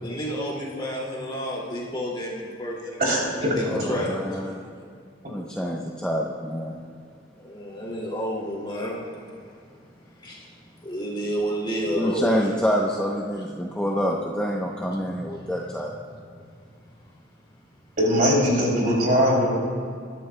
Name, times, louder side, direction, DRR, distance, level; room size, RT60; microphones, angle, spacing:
voice 1, 0.0-3.2 3.6-4.2 4.4-4.5 7.4-9.0 10.2-10.4 10.8-12.2, equal, 25° left, -4 dB, 2.3 m, -30 dB
voice 2, 3.0-4.0 12.2-12.3 18.0-19.5, equal, 45° right, -3 dB, 3.1 m, -21 dB
voice 3, 3.6-4.6 5.3-6.7 12.0-15.9, equal, 5° left, -3 dB, 0.7 m, -27 dB
21.0 x 11.5 x 2.2 m, 2.2 s
head